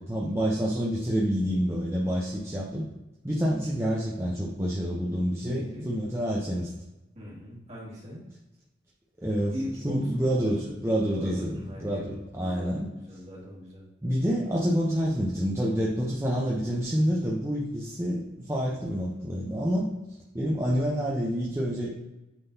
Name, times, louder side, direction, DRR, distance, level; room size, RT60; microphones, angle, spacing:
voice 1, 0.0-2.8 3.2-6.7 9.2-9.6 9.8-12.9 14.0-19.9 20.3-22.0, equal, 15° right, -4 dB, 0.7 m, -28 dB
voice 2, 5.4-5.9 7.1-8.2 9.5-10.0 10.3-10.8 11.1-13.8, equal, 35° right, -6 dB, 2.2 m, -40 dB
8.8 x 3.9 x 2.7 m, 1.0 s
head